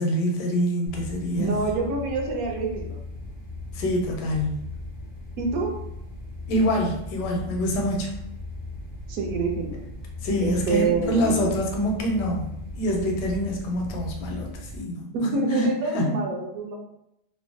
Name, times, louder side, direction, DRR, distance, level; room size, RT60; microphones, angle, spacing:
voice 1, 0.0-1.5 3.7-4.6 6.5-8.1 10.2-15.1 15.5-16.1, equal, 85° left, 1 dB, 1.2 m, -26 dB
sound 1, 0.9-14.8, left 2 dB, 30° left, 0.4 m, -37 dB
voice 2, 1.4-3.0 5.4-5.7 9.1-9.8 10.4-11.6 15.1-16.7, right 3 dB, 70° right, 1 dB, 0.9 m, -26 dB
3.0 x 2.0 x 2.6 m, 0.80 s
omnidirectional pair, 1.8 m